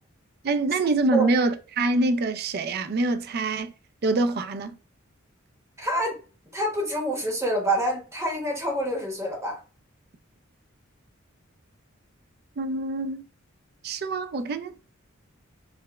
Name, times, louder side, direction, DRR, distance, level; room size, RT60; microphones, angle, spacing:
voice 1, 0.4-3.7 4.0-4.7 12.6-13.3 13.8-14.7, right 2 dB, 50° right, 0.4 m, -25 dB
voice 2, 5.8-6.2 6.5-9.6, right 1 dB, 15° right, 0.9 m, -26 dB
4.7 x 2.1 x 2.2 m
head